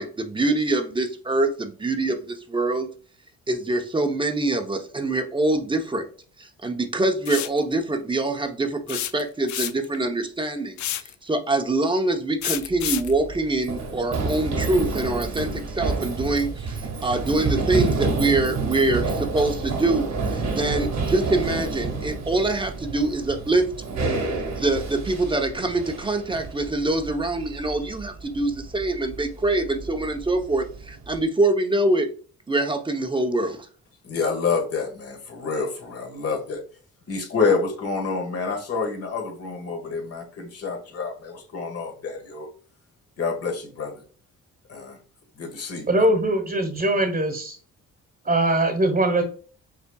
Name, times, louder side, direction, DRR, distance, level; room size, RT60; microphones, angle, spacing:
voice 1, 0.0-2.9 3.5-6.0 6.4-10.8 11.2-23.6 24.3-32.1 32.5-33.6, right 2 dB, 15° right, 6 dB, 0.8 m, -24 dB
sound 1, 7.3-7.6 8.9-10.0 10.8-11.1 12.4-13.1, left 12 dB, 70° left, 0.5 m, -28 dB
Run, 12.6-31.2, right 3 dB, 65° right, 1.5 m, -29 dB
voice 2, 34.0-36.6 37.1-42.5 43.2-44.0 44.7-45.0 45.4-45.9, left 4 dB, 50° left, 2 dB, 1.6 m, -28 dB
voice 3, 45.9-47.6 48.2-49.2, right 1 dB, 30° right, 3 dB, 1.2 m, -21 dB
5.5 x 3.4 x 2.3 m, 0.41 s
cardioid pair, 90°, 30 cm